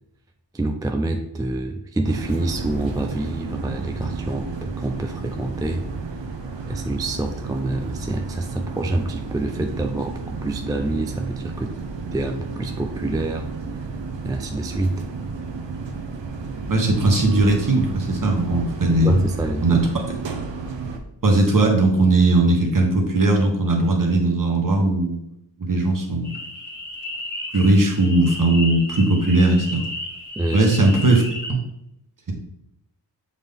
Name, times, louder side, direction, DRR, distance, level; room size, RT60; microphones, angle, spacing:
voice 1, 0.5-5.8 6.7-11.7 12.1-13.5 14.2-15.0 19.0-19.9 30.4-30.7, right 2 dB, 10° right, 3 dB, 0.4 m, -26 dB
sound 1, 2.0-21.0, right 4 dB, 70° right, 0.9 m, -32 dB
voice 2, 16.7-19.1 19.6-19.8 21.2-25.2 25.6-26.3 27.5-29.9 30.5-31.2 31.5-31.6, right 2 dB, 45° right, 1 dB, 1.3 m, -18 dB
sound 2, 26.2-31.5, left 1 dB, 25° left, 2.2 m, -33 dB
7.1 x 3.9 x 3.5 m, 0.82 s
wide cardioid pair, 135°, 45 cm